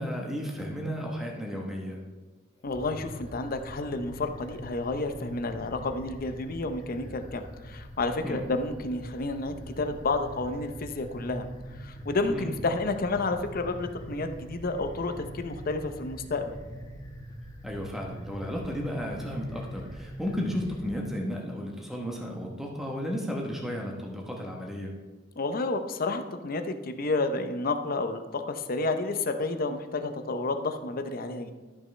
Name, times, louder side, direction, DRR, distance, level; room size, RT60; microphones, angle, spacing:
voice 1, 0.0-2.0 8.2-8.4 12.3-12.5 17.6-24.9, equal, ahead, -1 dB, 1.0 m, -33 dB
voice 2, 2.6-11.5 11.8-16.6 25.4-31.5, left 3 dB, 50° left, 8 dB, 0.6 m, -30 dB
sound 1, 2.6-21.0, equal, 20° left, 1.3 m, -43 dB
13.0 x 6.1 x 3.3 m, 1.3 s
head